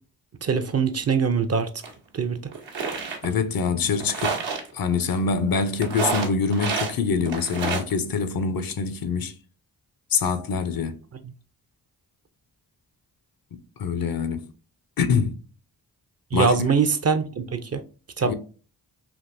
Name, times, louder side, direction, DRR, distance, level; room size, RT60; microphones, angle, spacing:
voice 1, 0.4-1.7 2.1-2.4 11.2-11.3 16.3-17.8 18.2-18.3, right 5 dB, 35° right, 0.5 m, -23 dB
sound 1, 1.8-1.9 2.5-3.2 4.0-4.7 5.8-6.9 7.2-7.9, right 5 dB, 80° right, 0.9 m, -28 dB
voice 2, 3.2-4.4 4.7-9.3 10.1-11.0 13.8-14.5 15.0-15.4 16.3-16.5 18.2-18.3, left 5 dB, 55° left, 0.6 m, -24 dB
3.5 x 2.5 x 2.5 m
supercardioid pair, 45°, 42 cm